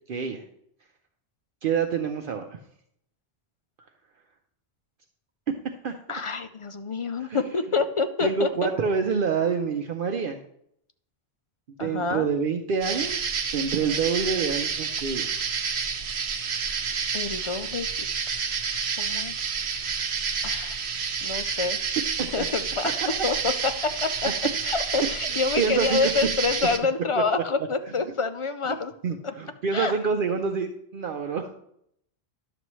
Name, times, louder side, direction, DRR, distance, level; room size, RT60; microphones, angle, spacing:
voice 1, 0.1-0.4 1.6-2.6 5.8-6.2 7.2-7.4 8.2-10.4 11.8-13.2 13.5-15.3 22.2-22.5 25.3-26.1 29.0-31.5, right 6 dB, 60° right, 4 dB, 0.8 m, -27 dB
voice 2, 6.1-8.5 11.8-12.3 17.1-17.9 19.0-19.4 19.7-20.1 20.4-20.8 21.2-21.8 22.3-22.9 23.2-24.1 24.6-28.9 29.7-29.9, left 4 dB, 60° left, 9 dB, 0.3 m, -27 dB
sound 1, 12.8-26.8, right 6 dB, 80° right, 1.1 m, -29 dB
11.0 x 6.9 x 3.1 m, 0.72 s
omnidirectional pair, 1.1 m